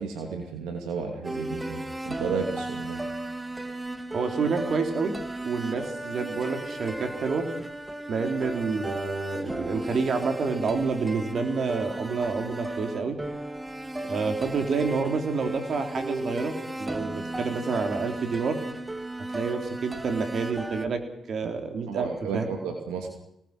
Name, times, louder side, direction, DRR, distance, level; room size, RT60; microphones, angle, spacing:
voice 1, 0.0-3.0 21.4-21.5 21.9-23.1, right 5 dB, 90° right, 3 dB, 2.7 m, -33 dB
sound 1, 1.2-20.9, right 1 dB, 20° right, 2.1 m, -35 dB
voice 2, 4.1-5.1 5.4-7.5 8.1-13.2 14.1-18.6 19.3-21.0 21.3-22.1 22.3-22.5, right 4 dB, 60° right, 5 dB, 3.9 m, -28 dB
25.0 x 19.0 x 6.3 m, 0.77 s
supercardioid pair, 50°, 0 cm